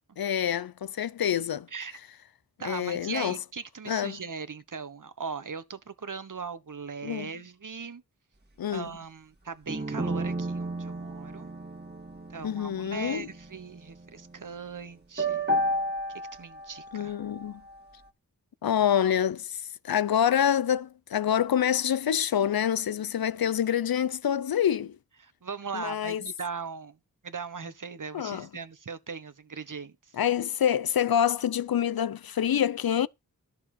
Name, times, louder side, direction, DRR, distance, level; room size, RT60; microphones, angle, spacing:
voice 1, 0.2-1.7 2.6-3.4 3.9-4.2 7.0-7.3 8.6-8.9 12.4-13.3 16.9-17.6 18.6-25.0 25.7-26.2 28.1-28.5 30.1-33.1, left 9 dB, 70° left, 0.6 m, -26 dB
voice 2, 2.6-8.0 8.7-11.5 12.3-15.7 16.3-17.2 25.2-27.0 27.2-30.1, right 5 dB, 55° right, 1.2 m, -39 dB
sound 1, 9.7-14.5 15.2-17.8, right 1 dB, 25° right, 2.1 m, -32 dB
11.5 x 6.7 x 4.3 m
cardioid pair, 45°, 37 cm